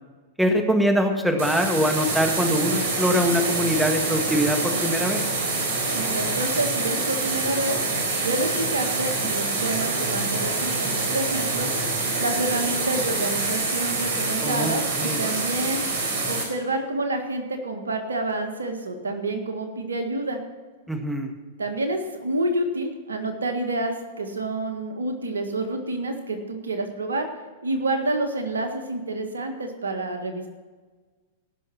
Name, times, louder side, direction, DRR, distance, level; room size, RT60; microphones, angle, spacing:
voice 1, 0.4-5.2 14.4-15.2 20.9-21.3, equal, 5° right, 4 dB, 1.8 m, -23 dB
sound 1, 1.4-16.4, right 3 dB, 60° right, 4.1 m, -26 dB
voice 2, 5.9-7.8 8.2-11.7 12.2-15.8 16.3-20.4 21.6-27.2 27.6-30.5, right 2 dB, 90° right, 5 dB, 1.7 m, -28 dB
17.5 x 6.4 x 5.9 m, 1.4 s
hypercardioid pair, 105°, 0 cm